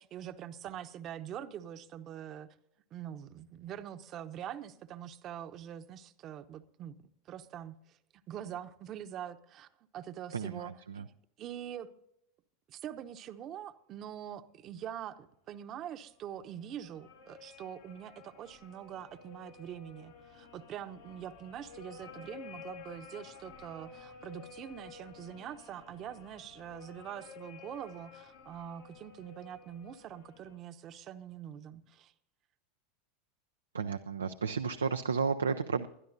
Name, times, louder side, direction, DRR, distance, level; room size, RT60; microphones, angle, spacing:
voice 1, 0.0-2.5 2.9-7.0 7.3-8.0 8.3-11.9 12.7-32.1, right 10 dB, 45° right, 0.9 m, -44 dB
voice 2, 10.3-11.1 33.7-35.9, right 5 dB, 85° right, 0.5 m, -33 dB
sound 1, 16.2-30.6, left 5 dB, 80° left, 2.7 m, -52 dB
21.0 x 12.0 x 2.7 m
hypercardioid pair, 85°, 0 cm